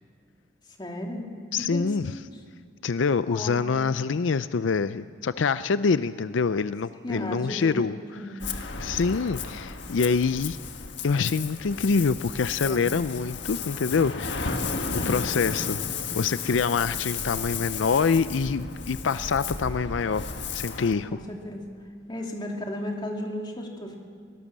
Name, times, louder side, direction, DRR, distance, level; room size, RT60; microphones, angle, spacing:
voice 1, 0.8-1.3 1.7-2.2 3.3-3.6 6.9-7.7 8.1-8.5 12.6-13.0 14.9-15.1 21.1-21.6 22.1-24.0, left 1 dB, 25° left, 1 dB, 2.7 m, -35 dB
voice 2, 1.5-2.1 2.8-7.9 8.3-10.6 11.0-14.6 14.9-15.8 16.2-20.2 20.5-21.2, left 5 dB, 85° left, 14 dB, 0.5 m, -26 dB
Ocean, 8.4-20.9, left 5 dB, 65° left, 1.6 m, -33 dB
24.5 x 18.0 x 7.4 m, 2.1 s
head